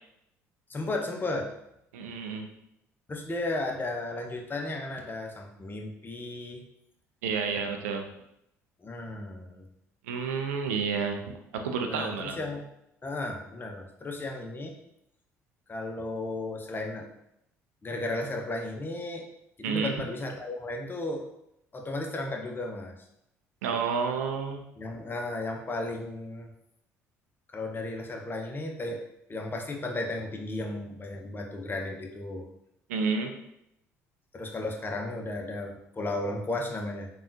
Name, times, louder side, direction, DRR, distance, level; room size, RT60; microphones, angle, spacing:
voice 1, 0.7-1.5 3.1-6.6 8.8-9.6 11.9-12.6 13.0-14.7 15.7-17.1 17.8-19.2 19.6-21.2 21.7-22.9 24.8-26.5 27.5-29.0 29.3-32.5 34.3-37.1, left 2 dB, 25° left, 2 dB, 0.6 m, -34 dB
voice 2, 1.9-2.5 7.2-8.1 10.0-12.4 19.6-19.9 23.6-24.6 32.9-33.4, right 5 dB, 80° right, 5 dB, 0.3 m, -30 dB
3.5 x 2.3 x 2.6 m, 0.80 s
hypercardioid pair, 55°, 8 cm